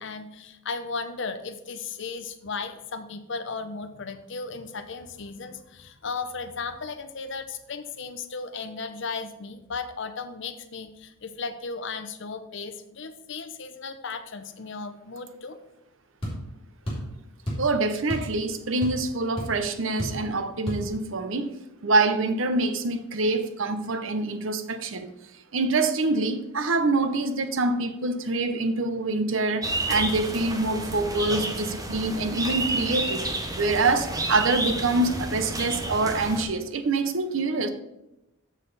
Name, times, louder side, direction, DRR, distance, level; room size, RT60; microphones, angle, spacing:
voice 1, 0.0-15.6 16.9-17.0, left 4 dB, 60° left, 10 dB, 0.7 m, -35 dB
sound 1, 16.2-16.4 16.8-17.1 17.5-17.7 18.1-18.3 18.6-19.1 19.4-19.5 20.0-20.2 20.7-20.8, equal, 25° left, 3.2 m, -31 dB
voice 2, 17.6-21.5 21.8-25.1 25.5-37.7, right 3 dB, 65° right, 9 dB, 0.7 m, -25 dB
sound 2, 29.6-36.4, right 2 dB, 15° right, 0.8 m, -30 dB
7.2 x 6.5 x 4.0 m, 0.90 s
head